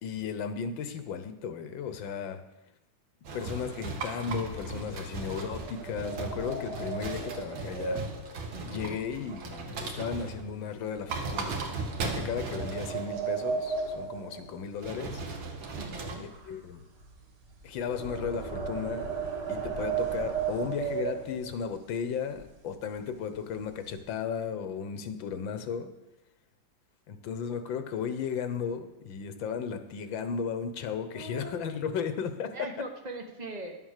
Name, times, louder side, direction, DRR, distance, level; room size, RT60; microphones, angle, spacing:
voice 1, 0.0-2.4 3.3-8.1 8.7-11.6 12.0-15.2 16.2-16.8 17.6-19.1 19.5-25.9 27.1-32.7, left 6 dB, 80° left, 10 dB, 1.7 m, -35 dB
sound 1, 3.2-10.5 11.0-13.2 14.8-16.2, right 3 dB, 80° right, 2.1 m, -37 dB
sound 2, 4.4-9.8 10.1-10.4 10.9-11.1 11.9-15.2 15.5-21.7 22.3-22.4 22.7-23.0 23.3-24.0, right 6 dB, 65° right, 2.3 m, -36 dB
voice 2, 8.5-9.0 15.8-16.2 31.1-31.8 32.5-33.8, right 2 dB, 25° right, 3 dB, 1.1 m, -41 dB
11.0 x 7.6 x 6.6 m, 0.97 s
omnidirectional pair, 2.1 m